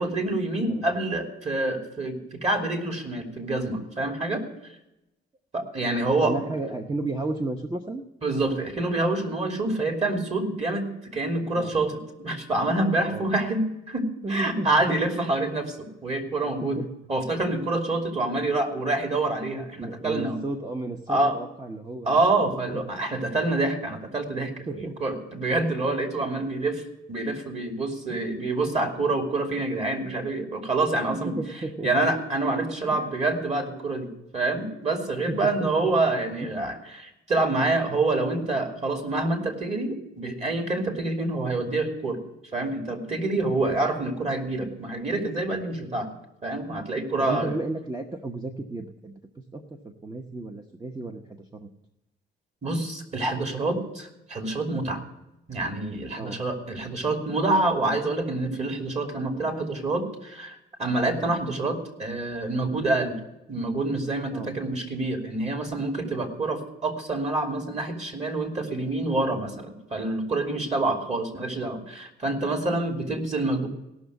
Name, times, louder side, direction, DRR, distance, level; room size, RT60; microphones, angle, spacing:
voice 1, 0.0-4.4 5.5-6.5 8.2-16.8 17.1-20.4 21.1-21.4 22.0-26.8 27.1-31.4 31.8-42.2 42.5-46.1 46.4-47.6 52.6-55.0 55.5-63.2 63.5-73.7, right 2 dB, 35° right, 3 dB, 2.9 m, -27 dB
voice 2, 6.2-8.0 11.5-11.7 13.0-13.3 14.2-15.0 16.6-16.9 17.9-18.0 19.8-22.8 24.7-25.0 26.4-26.6 28.1-28.3 31.1-31.9 32.9-33.2 35.3-35.9 47.2-51.7 56.2-56.4 64.3-64.5, right 2 dB, 20° right, 5 dB, 0.9 m, -34 dB
17.5 x 6.3 x 8.1 m, 0.91 s
cardioid pair, 90°, 20 cm